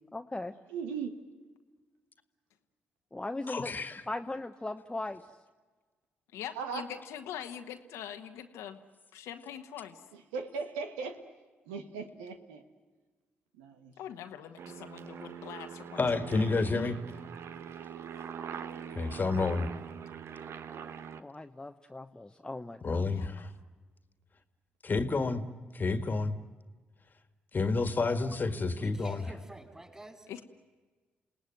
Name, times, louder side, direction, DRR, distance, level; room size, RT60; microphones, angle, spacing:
voice 1, 0.1-0.5 3.1-3.8 4.1-5.2 21.2-23.1, left 2 dB, 15° left, 6 dB, 1.0 m, -38 dB
voice 2, 0.7-1.1 6.5-6.9 10.1-11.2 11.7-12.6 13.6-13.9, right 5 dB, 90° right, 6 dB, 1.5 m, -38 dB
voice 3, 3.5-4.0 16.0-17.0 18.9-19.7 22.8-23.5 24.8-25.4 25.7-26.4 27.5-29.2, left 3 dB, 40° left, 10 dB, 1.8 m, -29 dB
voice 4, 6.3-8.8 9.1-10.0 14.0-16.0 16.7-16.9 19.4-19.5 23.1-23.4 30.3-30.4, left 10 dB, 80° left, 6 dB, 1.3 m, -43 dB
Aircraft, 14.6-21.2, right 7 dB, 65° right, 1.1 m, -43 dB
voice 5, 28.2-30.3, right 1 dB, 15° right, 5 dB, 4.7 m, -48 dB
28.5 x 18.5 x 9.2 m, 1.3 s
hypercardioid pair, 45°, 5 cm